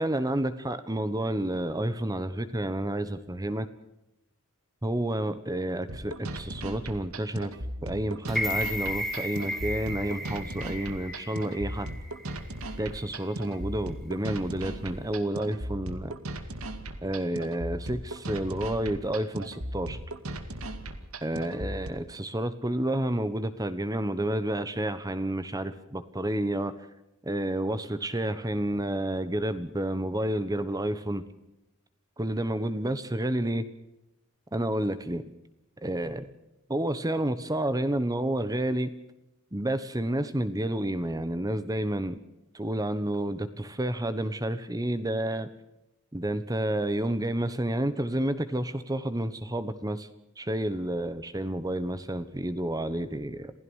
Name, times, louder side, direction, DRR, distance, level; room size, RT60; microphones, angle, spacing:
voice 1, 0.0-3.7 4.8-7.5 7.8-11.9 12.8-16.1 17.0-20.0 21.2-26.7 27.2-31.2 32.2-33.6 34.5-35.3 35.8-36.3 36.7-38.9 39.5-42.2 42.5-45.5 46.1-50.1 50.4-53.5, right 1 dB, 15° right, 12 dB, 1.2 m, -30 dB
sound 1, 5.9-21.9, right 1 dB, 85° right, 2.2 m, -37 dB
sound 2, 8.3-12.4 12.8-12.9, left 1 dB, ahead, 2.3 m, -34 dB
28.0 x 16.5 x 6.4 m, 0.90 s
head